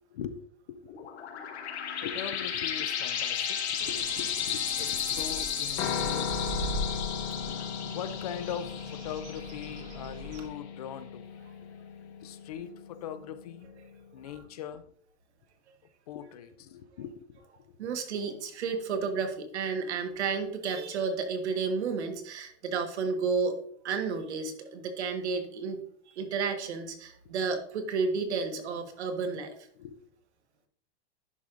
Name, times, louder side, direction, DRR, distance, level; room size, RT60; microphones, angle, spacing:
sound 1, 0.9-10.1, left 8 dB, 75° left, 1.2 m, -34 dB
voice 1, 2.0-6.4 7.6-11.3 12.2-13.7 14.1-14.8 16.1-17.4 29.8-30.0, left 9 dB, 35° left, 12 dB, 0.4 m, -41 dB
Bird, 3.8-10.5, right 1 dB, 40° right, 1.0 m, -41 dB
Piano, 5.8-14.0, left 6 dB, 20° left, 0.8 m, -38 dB
voice 2, 17.8-25.8 26.1-29.5, right 5 dB, 80° right, 6 dB, 1.5 m, -32 dB
10.5 x 4.7 x 2.5 m, 0.62 s
supercardioid pair, 170°, 34 cm